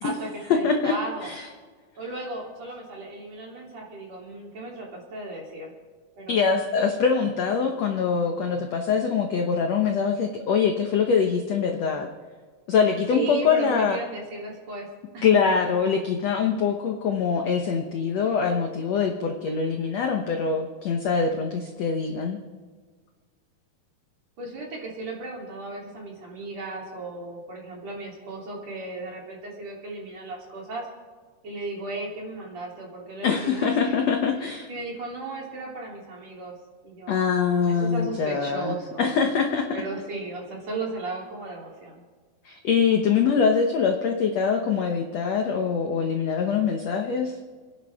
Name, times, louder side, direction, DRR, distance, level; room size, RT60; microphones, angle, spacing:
voice 1, 0.0-1.3 2.0-5.7 6.2-6.5 13.1-14.9 15.1-15.2 24.4-30.9 31.4-33.9 34.7-36.5 36.8-39.2 39.7-42.0, right 2 dB, 45° right, -2 dB, 4.2 m, -35 dB
voice 2, 6.3-12.1 12.7-14.0 15.2-22.4 33.2-34.7 37.1-39.7 42.4-47.3, left 6 dB, 70° left, 3 dB, 1.6 m, -24 dB
29.5 x 10.5 x 3.5 m, 1.5 s
omnidirectional pair, 4.5 m